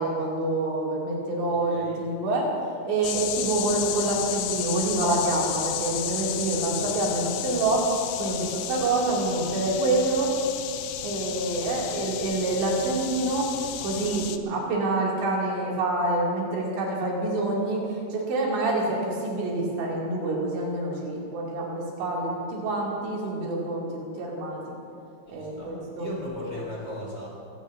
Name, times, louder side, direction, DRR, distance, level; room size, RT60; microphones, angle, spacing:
voice 1, 0.0-2.5 2.8-7.8 8.2-10.3 11.0-13.4 13.8-17.8 18.1-24.6 25.3-26.1, right 2 dB, 85° right, -4 dB, 5.0 m, -27 dB
sound 1, 3.0-14.4, left 11 dB, 85° left, 2.2 m, -33 dB
voice 2, 25.3-27.3, left 1 dB, 25° left, -5 dB, 3.8 m, -37 dB
24.0 x 18.0 x 2.7 m, 2.6 s
omnidirectional pair, 5.0 m